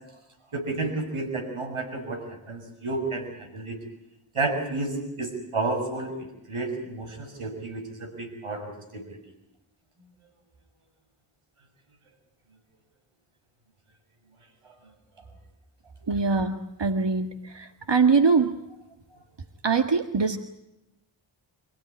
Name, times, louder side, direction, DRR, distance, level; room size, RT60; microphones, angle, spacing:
voice 1, 0.5-2.2 2.5-3.8 4.3-4.9 5.2-6.1 6.5-9.2, right 3 dB, 90° right, 5 dB, 6.8 m, -31 dB
voice 2, 16.1-16.5 16.8-17.3 17.5-18.5 19.6-20.4, right 4 dB, 55° right, 8 dB, 1.8 m, -22 dB
27.5 x 16.0 x 9.7 m, 0.90 s
cardioid pair, 40°, 49 cm